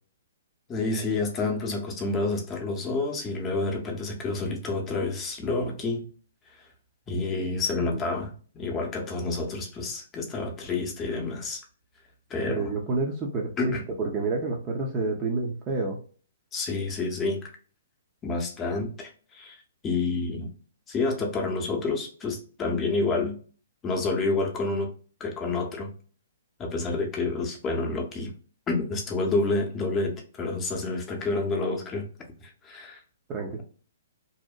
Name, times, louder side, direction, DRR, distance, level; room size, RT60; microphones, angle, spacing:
voice 1, 0.7-6.1 7.1-11.6 12.3-12.7 13.6-13.8 16.5-17.5 18.2-20.5 20.9-23.4 23.8-24.9 25.2-25.9 26.6-28.3 28.7-32.1 32.4-33.0, left 3 dB, 20° left, 0.6 m, -29 dB
voice 2, 12.5-13.7 14.0-16.0 33.3-33.6, right 3 dB, 30° right, 0.5 m, -29 dB
2.7 x 2.0 x 2.2 m
hypercardioid pair, 130°, 0 cm